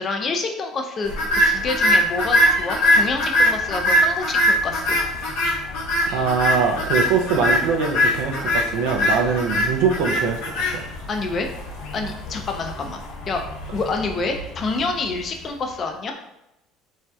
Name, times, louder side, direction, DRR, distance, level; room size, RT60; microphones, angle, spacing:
voice 1, 0.0-5.0 11.1-11.5 11.9-13.0 13.3-13.4 13.7-16.1, left 3 dB, 30° left, 4 dB, 0.4 m, -27 dB
sound 1, 1.1-15.4, equal, 75° left, 0.7 m, -22 dB
voice 2, 6.1-10.4 10.7-10.9, right 5 dB, 85° right, 3 dB, 0.4 m, -22 dB
3.1 x 2.6 x 2.3 m, 0.86 s
cardioid pair, 140°, 0 cm